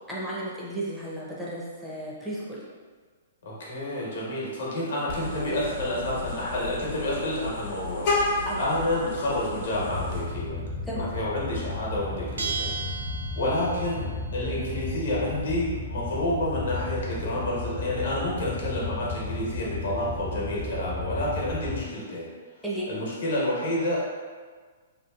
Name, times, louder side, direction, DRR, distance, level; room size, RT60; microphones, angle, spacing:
voice 1, 0.1-2.6 8.4-8.7 10.8-11.1 22.6-22.9, right 1 dB, 5° right, -7 dB, 0.5 m, -34 dB
voice 2, 3.4-10.6 11.1-12.7 13.4-22.3 22.9-24.0, left 1 dB, 70° left, -5 dB, 0.9 m, -29 dB
Vehicle horn car horn honking, 5.1-10.2, left 2 dB, 50° left, 0.6 m, -32 dB
sound 1, 9.8-21.8, left 2 dB, 55° right, 0.8 m, -34 dB
Bell, 12.4-14.0, right 5 dB, 80° right, 0.3 m, -34 dB
2.8 x 2.3 x 2.3 m, 1.5 s
hypercardioid pair, 125°, 0 cm